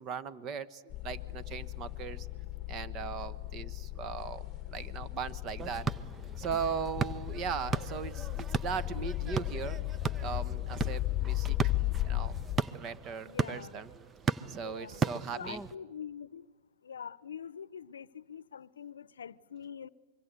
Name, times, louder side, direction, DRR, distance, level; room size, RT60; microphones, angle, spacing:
voice 1, 0.0-2.3 2.7-5.9 6.4-9.8 10.2-11.7 12.0-12.4 12.7-13.9 14.5-15.6, right 6 dB, 35° right, 1.2 m, -38 dB
sound 1, 0.9-12.6, left 16 dB, 30° left, 1.2 m, -36 dB
sound 2, 5.6-15.8, right 5 dB, 20° right, 0.7 m, -37 dB
voice 2, 13.2-13.8 14.6-15.0 15.4-16.5 16.8-19.9, left 7 dB, 85° left, 0.7 m, -44 dB
25.0 x 23.0 x 8.3 m
hypercardioid pair, 125°, 0 cm